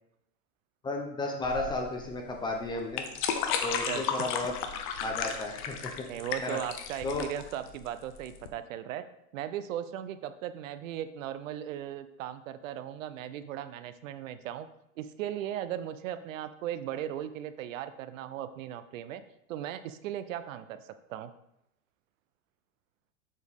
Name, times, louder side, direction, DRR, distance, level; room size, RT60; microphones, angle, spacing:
voice 1, 0.8-3.0 3.6-4.5 5.0-6.1 6.4-6.6 7.0-7.3, left 2 dB, 10° left, 1 dB, 0.6 m, -33 dB
sound 1, 1.4-8.5, left 7 dB, 40° left, 0.9 m, -34 dB
voice 2, 6.1-9.0 9.3-14.7 15.0-19.2 19.5-21.3, right 11 dB, 60° right, 12 dB, 0.6 m, -37 dB
7.3 x 6.1 x 3.5 m, 0.82 s
supercardioid pair, 140°, 44 cm